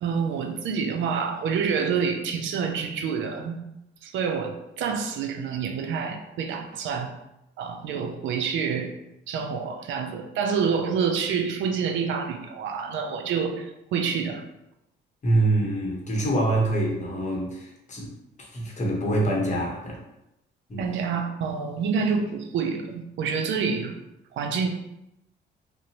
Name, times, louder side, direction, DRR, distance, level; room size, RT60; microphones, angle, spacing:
voice 1, 0.0-3.6 4.0-7.1 7.6-8.9 9.3-14.4 20.8-24.0 24.3-24.7, right 6 dB, 75° right, 5 dB, 0.4 m, -27 dB
voice 2, 15.2-18.1 18.4-20.0 20.7-20.9, right 1 dB, 35° left, -2 dB, 0.8 m, -25 dB
2.5 x 2.0 x 2.8 m, 0.86 s
cardioid pair, 90°, 20 cm